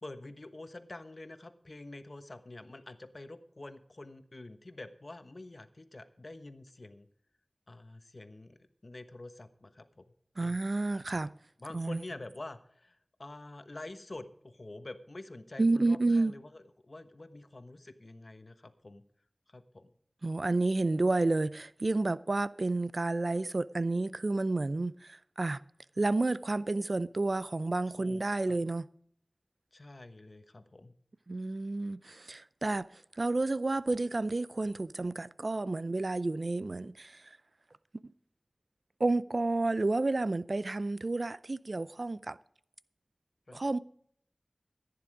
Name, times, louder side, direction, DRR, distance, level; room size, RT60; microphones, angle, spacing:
voice 1, 0.0-7.1 7.7-10.1 10.4-10.6 11.6-19.0 19.5-19.9 28.0-28.6 29.7-30.9 43.5-43.6, left 2 dB, 60° left, 1.1 m, -47 dB
voice 2, 10.4-11.3 11.7-12.0 15.6-16.3 20.2-25.6 26.0-28.9 31.3-32.9 33.2-37.2 39.0-42.4 43.5-43.8, right 2 dB, 65° right, 0.5 m, -30 dB
15.0 x 9.6 x 5.0 m
wide cardioid pair, 45°, 0 cm